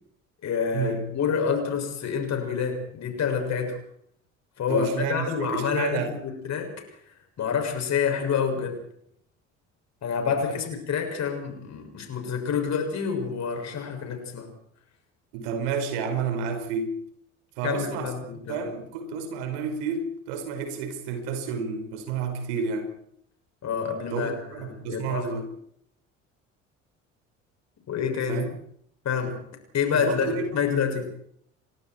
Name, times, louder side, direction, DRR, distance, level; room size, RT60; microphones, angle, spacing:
voice 1, 0.4-3.8 4.6-7.0 7.4-8.8 10.0-14.5 17.6-18.7 23.6-25.3 27.9-28.5 29.0-29.4 29.7-31.1, left 6 dB, 45° left, 4 dB, 6.8 m, -28 dB
voice 2, 4.7-6.1 15.3-17.0 17.6-18.1 18.5-22.9 24.1-25.5 28.3-28.5 30.0-30.6, right 5 dB, 70° right, 6 dB, 5.4 m, -30 dB
30.0 x 24.0 x 4.7 m, 0.71 s
figure-of-eight pair, 55°, 37 cm